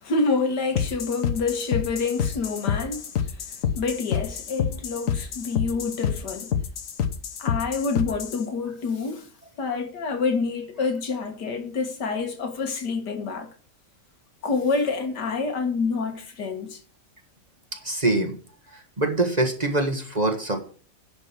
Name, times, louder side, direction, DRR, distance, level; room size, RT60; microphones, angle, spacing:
voice 1, 0.0-3.4 3.8-6.5 7.4-9.3 9.6-13.5 14.4-16.8, left 4 dB, 85° left, 2.2 m, -27 dB
sound 1, 0.7-8.4, left 8 dB, 55° left, 1.3 m, -28 dB
voice 2, 17.8-18.4 18.7-20.6, right 2 dB, 25° right, 1.6 m, -24 dB
10.5 x 5.3 x 7.4 m
omnidirectional pair, 1.8 m